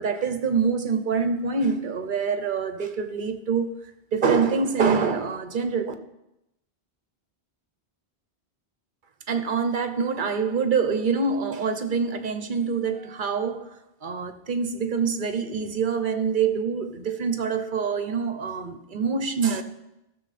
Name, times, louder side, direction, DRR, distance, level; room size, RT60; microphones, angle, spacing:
voice 1, 0.0-3.7 4.1-5.9 9.3-13.7 14.0-19.6, right 5 dB, 55° right, 1.0 m, -25 dB
15.0 x 6.8 x 4.2 m
omnidirectional pair, 1.1 m